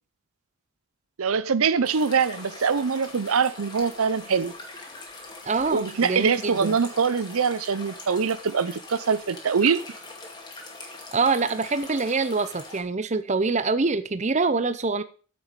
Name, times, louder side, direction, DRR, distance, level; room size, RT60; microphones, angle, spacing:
voice 1, 1.2-4.5 5.7-9.8, right 5 dB, 75° right, 0.6 m, -23 dB
sound 1, 1.8-12.8, left 2 dB, 20° left, 2.2 m, -42 dB
voice 2, 5.5-6.8 11.1-15.0, right 4 dB, 30° right, 0.6 m, -25 dB
8.7 x 7.2 x 6.7 m
head